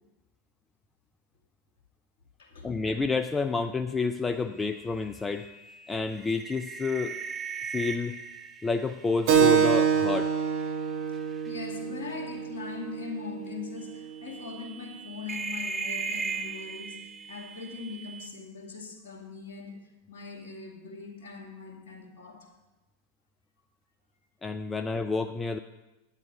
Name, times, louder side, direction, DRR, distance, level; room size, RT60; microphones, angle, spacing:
voice 1, 2.6-5.5 5.9-7.1 7.7-8.1 8.6-10.3 24.4-25.6, left 4 dB, 15° left, 9 dB, 0.4 m, -29 dB
sound 1, 4.4-10.7 11.1-11.5 12.6-12.8 13.3-13.4 14.3-18.3, right 5 dB, 20° right, 0.8 m, -38 dB
Keyboard (musical), 9.3-14.4, right 7 dB, 50° right, 1.7 m, -26 dB
voice 2, 11.5-22.5, left 5 dB, 55° left, 2 dB, 2.2 m, -41 dB
10.5 x 9.1 x 5.2 m, 1.0 s
figure-of-eight pair, 90°, 0 cm